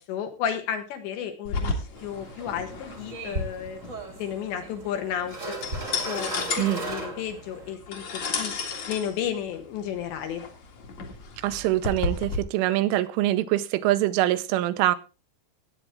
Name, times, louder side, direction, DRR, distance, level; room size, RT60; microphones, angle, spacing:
voice 1, 0.0-1.8 2.0-3.8 4.2-5.6 6.1-8.5 8.9-10.4, left 9 dB, 70° left, 6 dB, 3.5 m, -32 dB
sound 1, 1.4-12.4, left 4 dB, 50° left, 2.3 m, -33 dB
sound 2, 2.0-7.7, right 2 dB, 35° right, 1.3 m, -37 dB
voice 2, 11.4-15.0, right 14 dB, 85° right, 12 dB, 3.2 m, -24 dB
17.0 x 9.0 x 3.6 m, 0.30 s
omnidirectional pair, 5.6 m